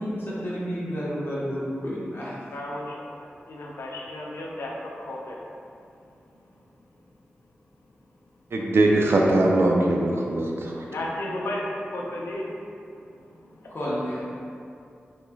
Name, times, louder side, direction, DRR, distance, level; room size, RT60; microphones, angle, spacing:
voice 1, 0.0-2.3 13.7-14.2, equal, 65° left, -8 dB, 1.1 m, -30 dB
voice 2, 2.5-2.8 3.5-4.7 5.1-5.3 10.8-11.6 11.9-12.4, left 1 dB, 90° left, -3 dB, 0.5 m, -33 dB
voice 3, 8.5-10.8, right 2 dB, 75° right, -1 dB, 0.5 m, -21 dB
3.8 x 3.1 x 2.3 m, 2.5 s
cardioid pair, 50°, 4 cm